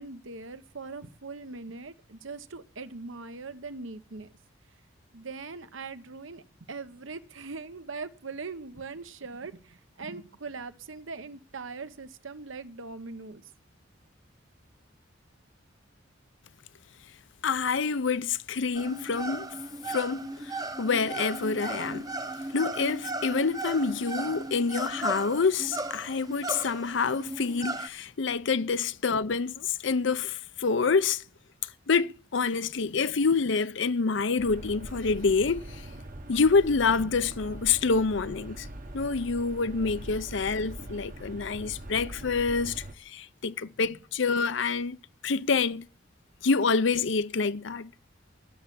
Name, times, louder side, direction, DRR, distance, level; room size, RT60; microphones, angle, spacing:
voice 1, 0.0-4.3 5.1-6.4 6.7-13.4, right 4 dB, 75° right, 1.0 m, -41 dB
voice 2, 17.4-19.5 19.9-22.1 22.5-31.2 31.9-35.8 36.3-38.7 38.9-45.0 45.2-45.9 46.4-47.9, left 4 dB, 65° left, 0.6 m, -27 dB
sound 1, 18.7-27.9, right 2 dB, 20° right, 0.8 m, -36 dB
sound 2, 34.4-42.9, right 1 dB, 40° right, 1.0 m, -42 dB
12.5 x 7.1 x 8.4 m
head